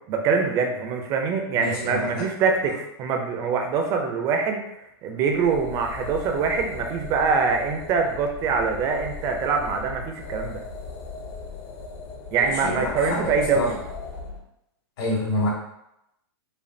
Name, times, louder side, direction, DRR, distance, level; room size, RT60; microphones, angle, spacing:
voice 1, 0.1-4.6 5.0-10.6 12.3-13.8, right 5 dB, 25° right, 4 dB, 0.4 m, -24 dB
voice 2, 1.5-2.2 12.3-13.7 15.0-15.5, left 1 dB, 65° left, -5 dB, 1.4 m, -27 dB
sound 1, 5.3-14.4, left 3 dB, 40° left, 0.6 m, -38 dB
5.0 x 2.3 x 2.6 m, 0.83 s
hypercardioid pair, 155°, 14 cm